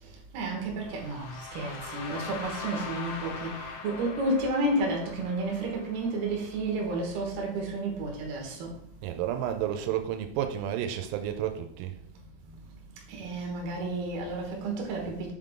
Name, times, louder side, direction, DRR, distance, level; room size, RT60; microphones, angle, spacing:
voice 1, 0.0-8.8 12.4-12.6 13.1-15.3, right 2 dB, 65° right, 2.7 m, -31 dB
sound 1, 0.8-6.8, left 4 dB, 90° left, 2.2 m, -41 dB
voice 2, 9.0-12.0, right 10 dB, 85° right, 3.3 m, -31 dB
7.1 x 3.7 x 3.7 m
omnidirectional pair, 6.0 m